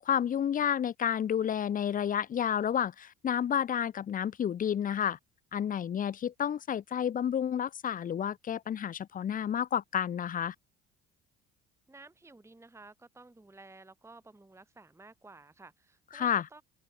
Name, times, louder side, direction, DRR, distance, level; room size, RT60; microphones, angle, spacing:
voice 1, 0.1-5.2 5.5-10.5 16.1-16.4, left 9 dB, 25° left, 0.4 m, -30 dB
voice 2, 11.9-16.6, right 3 dB, 10° right, 1.1 m, -53 dB
hypercardioid pair, 55°, 33 cm